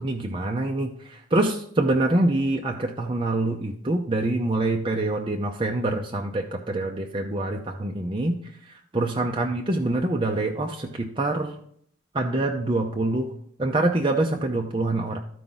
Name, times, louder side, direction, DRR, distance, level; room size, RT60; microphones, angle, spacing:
voice 1, 0.0-8.4 8.9-11.6 12.1-13.3 13.6-15.2, right 2 dB, 25° right, 1 dB, 0.6 m, -25 dB
14.0 x 4.9 x 3.9 m, 0.64 s
head